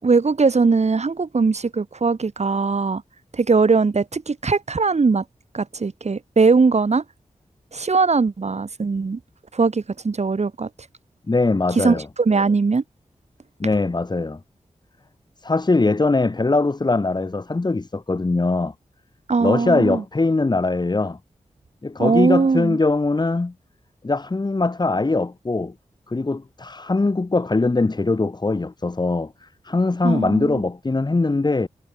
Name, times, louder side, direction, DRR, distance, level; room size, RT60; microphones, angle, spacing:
voice 1, 0.0-3.0 3.3-5.2 5.5-7.0 7.7-9.2 9.5-10.7 11.7-12.8 19.3-20.0 22.0-22.8 30.0-30.6, right 4 dB, 60° right, 3.2 m, -20 dB
voice 2, 11.3-12.0 13.6-14.4 15.4-18.7 19.4-21.2 21.8-23.5 24.0-25.7 26.1-31.7, left 3 dB, 35° left, 1.3 m, -21 dB
cardioid pair, 50°, 13 cm